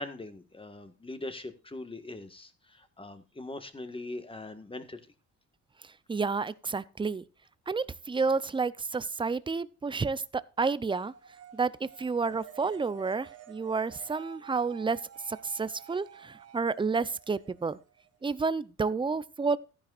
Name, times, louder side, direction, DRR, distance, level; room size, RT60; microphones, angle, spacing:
voice 1, 0.0-5.0, left 2 dB, 15° left, 1.6 m, -41 dB
voice 2, 6.1-7.2 7.7-11.1 11.5-15.0 15.3-17.8 18.2-19.6, right 4 dB, 15° right, 0.6 m, -30 dB
sound 1, 10.9-18.4, right 10 dB, 50° right, 1.5 m, -51 dB
14.5 x 10.5 x 2.5 m
cardioid pair, 90°, 30 cm